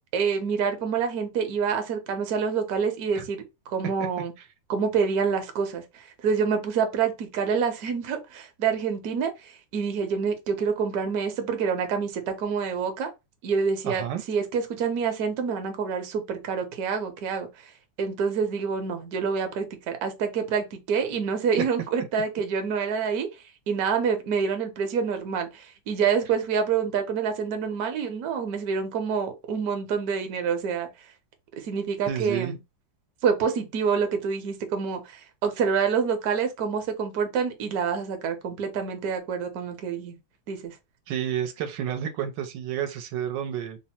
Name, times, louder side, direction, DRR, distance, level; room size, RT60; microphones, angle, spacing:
voice 1, 0.1-4.3 4.7-13.1 13.4-17.7 18.0-23.3 23.7-30.9 31.6-32.6 33.2-40.1 40.5-40.7, right 6 dB, 65° right, 1.1 m, -27 dB
voice 2, 13.8-14.2 32.1-32.6 41.1-43.8, right 9 dB, 85° right, 1.3 m, -30 dB
3.4 x 2.0 x 4.2 m
omnidirectional pair, 2.0 m